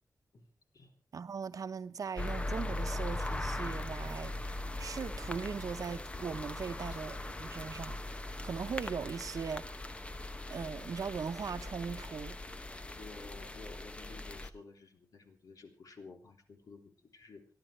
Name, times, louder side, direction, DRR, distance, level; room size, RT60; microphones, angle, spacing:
voice 1, 1.1-9.7 10.5-12.4, right 6 dB, 65° right, 1.0 m, -39 dB
sound 1, 2.2-14.5, left 1 dB, 20° left, 0.8 m, -40 dB
voice 2, 13.0-17.5, left 4 dB, 65° left, 3.3 m, -53 dB
28.0 x 11.5 x 3.3 m
wide cardioid pair, 145°, 6 cm